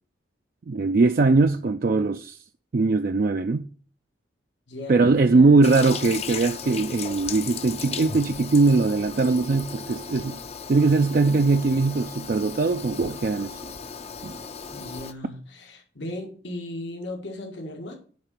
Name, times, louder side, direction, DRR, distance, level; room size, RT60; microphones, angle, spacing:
voice 1, 0.7-2.4 2.7-3.7 4.9-10.4 10.7-13.7 14.2-14.3, right 3 dB, 50° right, 0.4 m, -21 dB
voice 2, 4.7-5.6 14.7-18.0, left 1 dB, 85° left, 1.7 m, -36 dB
Toilet flush, 5.6-15.1, left 6 dB, 35° left, 0.5 m, -36 dB
10.0 x 3.8 x 6.5 m
head